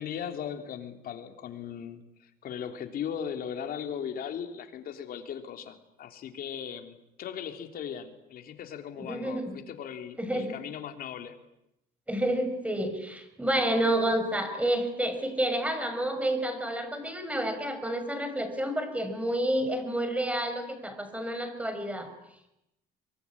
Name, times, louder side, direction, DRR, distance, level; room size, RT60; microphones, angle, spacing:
voice 1, 0.0-11.3, left 8 dB, 60° left, 5 dB, 3.6 m, -38 dB
voice 2, 9.0-9.6 10.2-10.6 12.1-22.1, right 1 dB, 10° right, 9 dB, 5.9 m, -29 dB
24.0 x 23.5 x 9.9 m, 0.86 s
cardioid pair, 110°, 17 cm